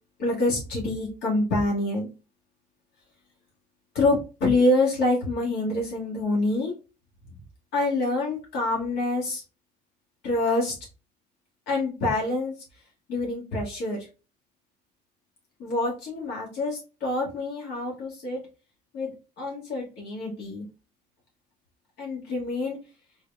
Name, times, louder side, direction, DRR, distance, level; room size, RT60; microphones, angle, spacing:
voice 1, 0.2-2.1 3.9-6.7 7.7-9.4 10.2-10.7 11.7-12.5 13.1-14.1 15.6-18.4 18.9-20.6 22.0-22.8, left 2 dB, 85° left, -4 dB, 1.9 m, -26 dB
4.5 x 3.8 x 2.4 m, 0.32 s
cardioid pair, 110°, 17 cm